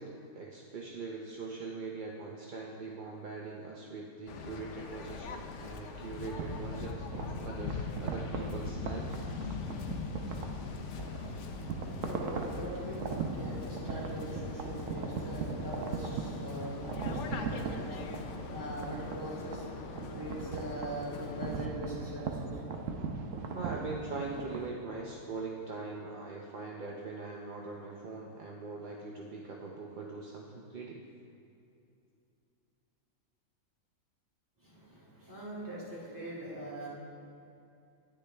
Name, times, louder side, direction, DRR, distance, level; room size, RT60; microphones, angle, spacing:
voice 1, 0.0-9.5 23.5-31.0, right 3 dB, 50° right, -2 dB, 0.6 m, -42 dB
Waves surf, 4.3-21.7, left 5 dB, 60° left, 0.9 m, -41 dB
sound 1, 6.2-24.7, right 5 dB, 65° right, 1.1 m, -39 dB
voice 2, 11.1-22.8 34.6-36.9, right 1 dB, 15° right, -7 dB, 2.1 m, -42 dB
10.0 x 9.7 x 3.3 m, 2.7 s
omnidirectional pair, 1.5 m